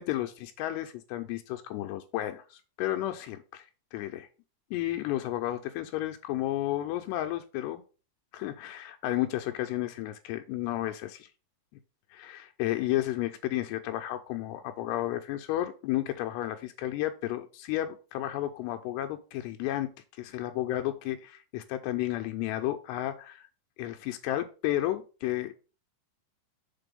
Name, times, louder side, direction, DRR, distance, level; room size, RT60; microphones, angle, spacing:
voice 1, 0.0-3.7 3.9-4.3 4.7-7.8 8.3-11.3 12.1-19.9 20.2-23.4 23.8-25.5, left 14 dB, 85° left, 6 dB, 2.7 m, -32 dB
6.8 x 4.2 x 5.2 m, 0.34 s
omnidirectional pair, 4.9 m